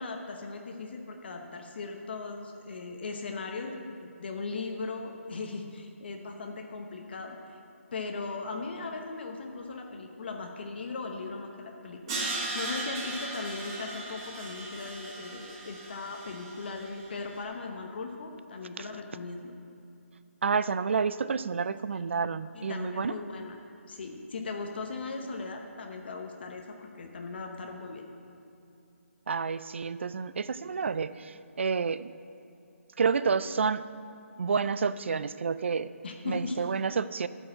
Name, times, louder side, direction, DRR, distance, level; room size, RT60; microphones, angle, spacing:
voice 1, 0.0-7.6 7.9-12.2 12.5-19.5 22.5-23.6 23.9-28.0 36.0-36.6, left 3 dB, 45° left, 3 dB, 0.9 m, -38 dB
Crash cymbal, 12.1-17.1, right 2 dB, 20° right, 1.3 m, -37 dB
voice 2, 20.4-23.1 29.3-32.1 33.0-33.8 34.4-35.9 36.2-37.3, right 5 dB, 55° right, 15 dB, 0.3 m, -29 dB
13.0 x 4.6 x 7.6 m, 2.7 s
hypercardioid pair, 170°, 8 cm